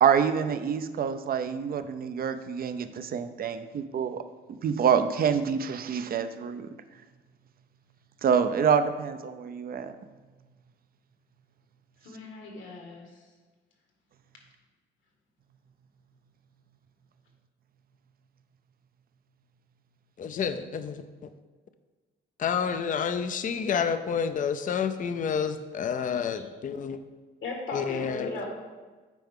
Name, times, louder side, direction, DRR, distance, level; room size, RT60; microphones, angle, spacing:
voice 1, 0.0-4.2 4.6-6.7 8.2-9.9, right 7 dB, 50° right, 10 dB, 0.5 m, -26 dB
voice 2, 12.0-13.2 26.3-26.4 27.4-28.5, left 3 dB, 75° left, 0 dB, 1.8 m, -37 dB
voice 3, 20.2-21.0 22.4-27.0 27.7-28.3, left 7 dB, 40° left, 10 dB, 0.5 m, -29 dB
9.1 x 4.6 x 3.7 m, 1.3 s
cardioid pair, 90°, 20 cm